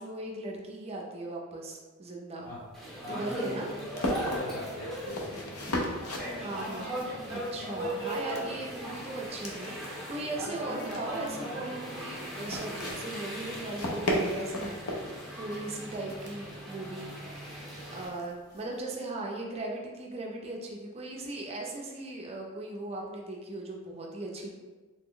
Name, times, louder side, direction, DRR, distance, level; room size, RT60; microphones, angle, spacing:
voice 1, 0.0-2.5 3.1-3.7 6.4-17.1 17.9-24.5, right 2 dB, 25° right, 0 dB, 0.4 m, -38 dB
sound 1, 2.4-18.8, left 1 dB, 80° left, 0.6 m, -38 dB
sound 2, 2.7-18.1, right 1 dB, ahead, 0.7 m, -39 dB
voice 2, 3.0-3.6 4.1-5.4 7.6-7.8, left 1 dB, 60° left, -12 dB, 1.1 m, -40 dB
3.2 x 2.1 x 3.7 m, 1.3 s
head